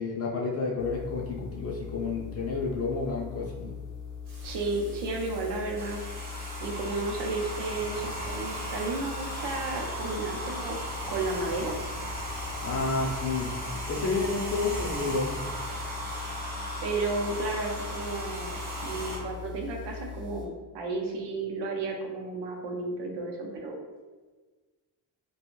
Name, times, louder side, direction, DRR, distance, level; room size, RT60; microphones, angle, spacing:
voice 1, 0.0-3.7 12.4-13.5 13.9-15.4, left 3 dB, 35° left, -2 dB, 0.4 m, -30 dB
sound 1, 0.8-20.5, left 6 dB, 85° left, 0.6 m, -41 dB
Water / Water tap faucet / Sink (filling or washing), 4.2-11.0, right 2 dB, 50° right, 0.9 m, -51 dB
voice 2, 4.4-6.0 6.6-10.8 11.1-11.7 16.8-18.6 18.8-23.8, right 3 dB, 80° right, 0 dB, 0.7 m, -33 dB
Domestic sounds home sounds, 5.8-19.2, right 1 dB, 25° right, 0.6 m, -37 dB
2.4 x 2.3 x 3.0 m, 1.3 s
cardioid pair, 145°, 41 cm